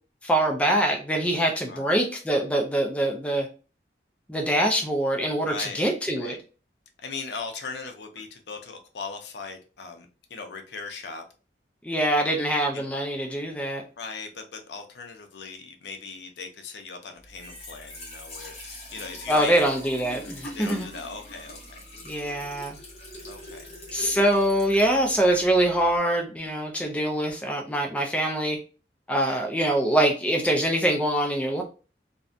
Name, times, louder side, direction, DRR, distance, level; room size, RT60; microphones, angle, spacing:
voice 1, 0.2-3.5 4.3-6.4 11.8-13.8 19.3-20.9 22.0-22.8 23.9-28.6 29.1-31.6, right 1 dB, 5° left, 0.3 m, -24 dB
voice 2, 1.7-2.0 5.5-5.9 6.2-6.4 7.0-11.2 12.7-12.8 14.0-19.5 20.4-21.8 23.2-23.7 29.2-29.4, left 4 dB, 75° left, 0.5 m, -39 dB
Trickle dribble / Fill (with liquid), 17.2-26.0, left 1 dB, 35° left, 0.7 m, -43 dB
2.6 x 2.1 x 2.3 m
head